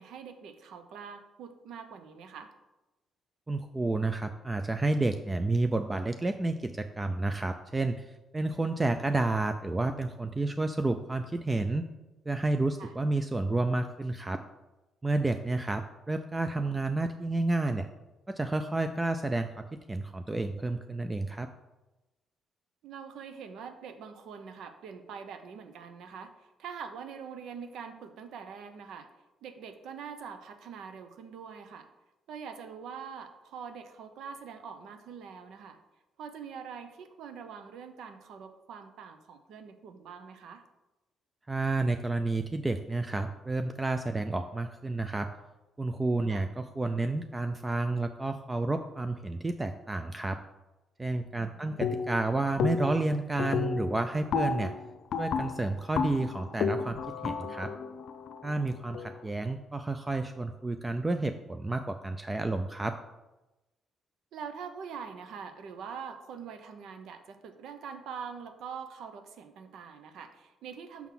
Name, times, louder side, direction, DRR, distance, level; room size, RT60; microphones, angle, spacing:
voice 1, 0.0-2.5 12.8-12.9 22.8-29.1 29.4-31.9 32.3-35.8 36.2-40.6 46.3-46.5 51.3-51.9 64.3-71.1, right 6 dB, 80° right, 8 dB, 0.7 m, -44 dB
voice 2, 3.5-11.8 12.3-14.4 15.0-17.9 18.3-21.5 41.5-45.3 45.8-50.4 51.0-54.7 55.2-57.7 58.4-63.0, right 2 dB, 20° right, 7 dB, 0.3 m, -30 dB
sound 1, 51.8-52.3 52.6-53.1 53.4-59.2, left 6 dB, 70° left, 0.5 m, -32 dB
5.9 x 3.7 x 5.8 m, 1.0 s
cardioid pair, 90°, 0 cm